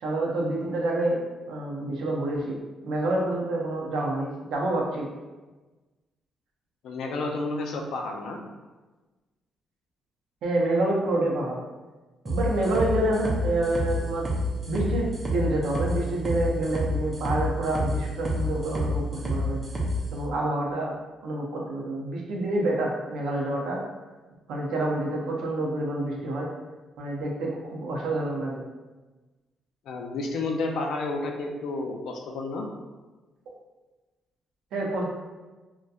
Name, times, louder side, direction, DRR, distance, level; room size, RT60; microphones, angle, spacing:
voice 1, 0.0-1.2 1.5-2.6 2.8-5.1 10.4-11.6 12.2-14.3 14.7-19.6 20.1-20.9 21.2-23.8 24.5-26.5 27.0-28.6 34.7-35.1, right 1 dB, 80° right, -2 dB, 0.5 m, -27 dB
voice 2, 6.8-8.4 29.9-32.6, left 3 dB, 75° left, 2 dB, 0.4 m, -31 dB
sound 1, 12.3-20.0, left 1 dB, 20° right, 0.6 m, -28 dB
2.7 x 2.1 x 2.3 m, 1.2 s
cardioid pair, 90°, 0 cm